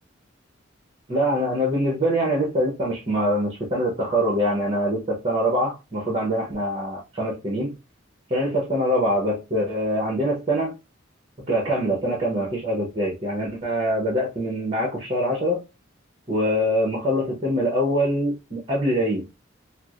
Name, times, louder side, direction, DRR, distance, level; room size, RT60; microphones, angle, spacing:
voice 1, 1.1-7.7 8.3-10.7 11.5-15.6 16.3-19.2, equal, 30° right, 0.8 m, -24 dB
4.5 x 2.0 x 2.4 m
head